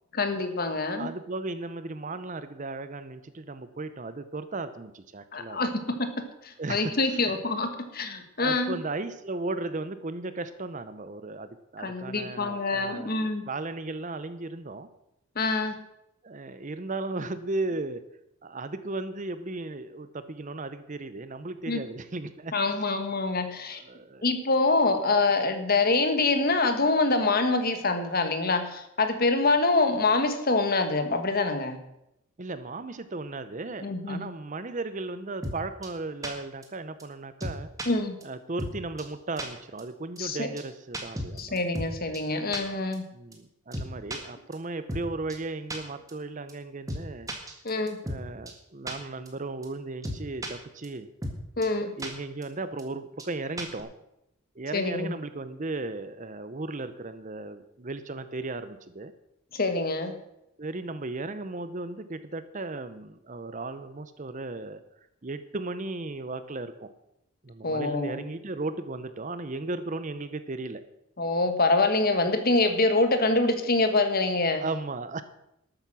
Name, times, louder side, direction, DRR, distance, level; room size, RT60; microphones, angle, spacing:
voice 1, 0.1-1.1 5.3-8.8 11.8-13.5 15.3-15.7 21.7-21.8 22.5-23.8 24.2-31.8 33.8-34.3 37.9-38.2 40.2-40.5 41.4-43.1 47.6-48.0 51.6-51.9 54.7-55.1 59.5-60.2 67.6-68.2 71.2-74.6, left 3 dB, 40° left, 8 dB, 1.4 m, -25 dB
voice 2, 0.7-5.6 6.6-7.4 8.4-13.1 13.5-14.9 16.2-18.0 18.4-22.6 23.5-24.3 32.4-37.7 38.2-41.5 43.1-47.3 48.0-51.1 51.8-53.9 54.6-59.1 60.6-64.8 65.2-66.9 67.4-70.8 74.6-75.2, right 2 dB, 35° right, 12 dB, 0.6 m, -36 dB
sound 1, 35.4-35.6 35.8-35.9 36.2-36.3 36.6-36.7 37.0-37.1 37.4-37.9 38.2-38.3 38.6-38.7 39.0-39.1 39.4-39.5 39.8-39.9 40.2-40.3 40.6-40.7 40.9-41.9 42.1-42.2 42.5-42.6 42.9-43.0 43.3-43.4 43.7-44.2 44.5-44.6 44.9-45.0 45.3-45.4 45.7-45.8 46.1-46.2 46.5-46.6 46.9-47.0 47.3-48.2 48.5-48.6 48.9-49.0 49.3-49.4 49.6-49.7 50.0-50.5 50.8-50.9 51.2-51.4 51.6-51.7 52.0-52.1 52.4-52.5 52.8-52.9 53.2-53.3 53.6-53.8, equal, 15° right, 1.6 m, -34 dB
12.5 x 8.9 x 6.1 m, 0.83 s
head